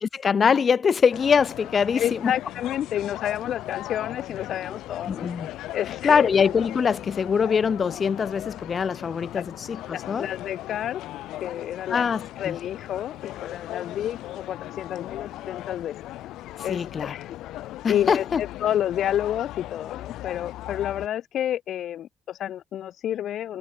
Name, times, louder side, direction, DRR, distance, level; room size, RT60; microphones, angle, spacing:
voice 1, 0.0-2.3 5.1-5.5 6.0-10.3 11.9-12.5 16.7-17.1 17.8-18.4, left 6 dB, 45° left, 1.4 m, -23 dB
sound 1, 1.1-21.1, left 15 dB, 90° left, 5.0 m, -38 dB
voice 2, 2.0-5.3 5.7-6.3 9.3-9.4 9.9-11.0 11.4-12.1 12.4-15.9 16.6-17.4 17.9-23.6, left 11 dB, 70° left, 2.7 m, -29 dB
cardioid pair, 90°, 0 cm